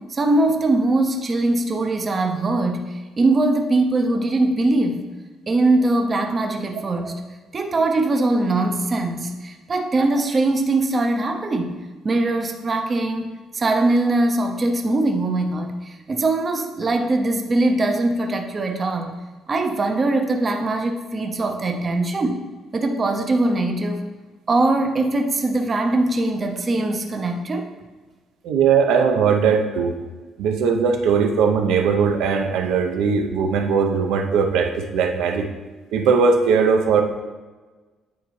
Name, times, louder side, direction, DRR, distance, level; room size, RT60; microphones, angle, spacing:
voice 1, 0.0-5.1 5.5-7.2 7.5-11.8 12.0-19.2 19.5-22.4 22.7-24.0 24.5-27.7, right 2 dB, 25° right, 4 dB, 0.4 m, -21 dB
voice 2, 28.4-29.9 30.4-35.5 35.9-37.0, right 6 dB, 85° right, 4 dB, 0.6 m, -19 dB
9.2 x 4.1 x 3.1 m, 1.3 s
cardioid pair, 170°, 0 cm